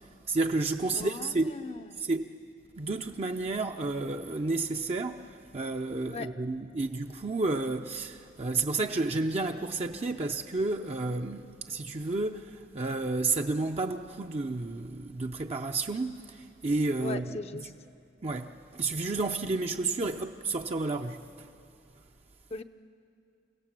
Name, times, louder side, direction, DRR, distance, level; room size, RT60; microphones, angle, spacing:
voice 1, 0.3-1.6 2.0-2.3 2.8-17.8 18.2-21.5, right 3 dB, 35° right, 0.6 m, -31 dB
voice 2, 0.9-2.0 6.1-6.3 17.0-17.7 22.5-22.6, left 3 dB, 35° left, 0.6 m, -39 dB
29.5 x 17.0 x 7.5 m
head